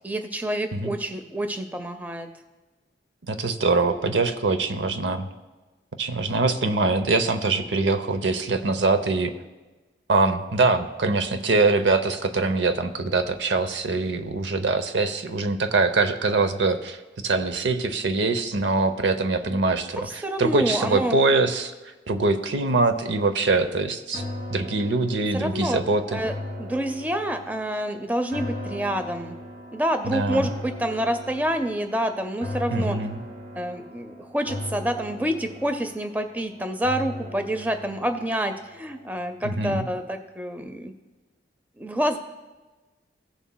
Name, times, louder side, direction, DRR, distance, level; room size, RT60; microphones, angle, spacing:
voice 1, 0.0-2.3 20.2-21.2 25.3-25.8 26.1-26.3 26.6-29.4 29.7-33.0 33.6-40.9 41.8-42.2, equal, 10° right, 7 dB, 0.5 m, -27 dB
voice 2, 3.3-5.3 6.0-9.3 10.1-17.0 17.2-21.7 22.1-24.2 24.5-26.2 30.0-30.5 32.7-33.2 39.4-39.9, right 3 dB, 80° right, 9 dB, 0.7 m, -23 dB
sound 1, 24.1-39.4 39.8-39.9, left 1 dB, 60° right, 1.7 m, -38 dB
17.0 x 7.0 x 2.2 m, 1.2 s
head